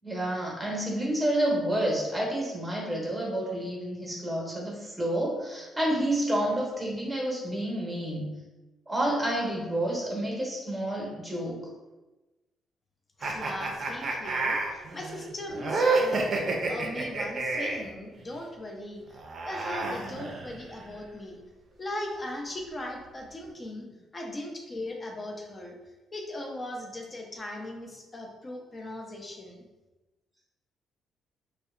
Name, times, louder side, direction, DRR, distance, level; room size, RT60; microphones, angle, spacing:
voice 1, 0.0-8.3 8.9-11.6, right 1 dB, 10° right, -3 dB, 0.9 m, -29 dB
voice 2, 13.2-21.4 21.8-23.9 24.1-25.8 26.1-29.7, left 1 dB, 30° left, 1 dB, 0.5 m, -39 dB
sound 1, 13.2-17.9 19.1-20.8, right 3 dB, 50° right, 0.4 m, -29 dB
2.7 x 2.1 x 2.3 m, 1.1 s
cardioid pair, 90°, 0 cm